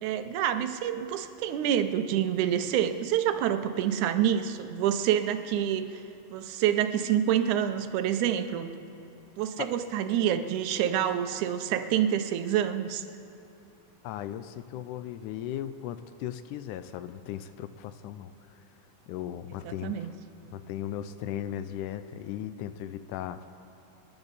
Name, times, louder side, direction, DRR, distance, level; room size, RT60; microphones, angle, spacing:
voice 1, 0.0-5.9 6.3-8.8 9.4-13.0 19.6-20.1, right 10 dB, 80° right, 9 dB, 2.1 m, -27 dB
voice 2, 14.0-18.6 19.1-20.0 20.5-23.4, left 11 dB, 85° left, 12 dB, 2.0 m, -37 dB
28.5 x 10.5 x 4.1 m, 2.8 s
omnidirectional pair, 3.6 m